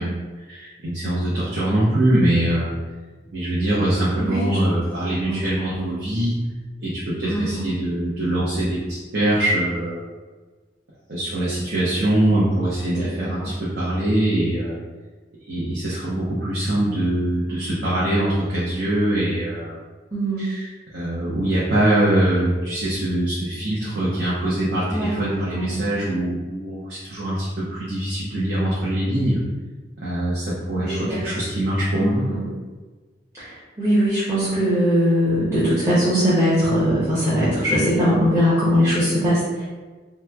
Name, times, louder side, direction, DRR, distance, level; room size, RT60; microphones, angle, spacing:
voice 1, 0.0-2.7 3.3-6.4 6.8-10.0 11.1-14.8 15.4-19.8 20.4-29.4 30.0-32.3, right 1 dB, 60° right, -8 dB, 0.7 m, -23 dB
voice 2, 5.2-5.8 7.2-7.7 13.2-13.5 20.1-20.4 24.9-25.9 30.7-31.2 31.9-32.4 33.4-39.6, equal, 15° right, -12 dB, 0.7 m, -21 dB
3.0 x 2.2 x 3.4 m, 1.3 s
head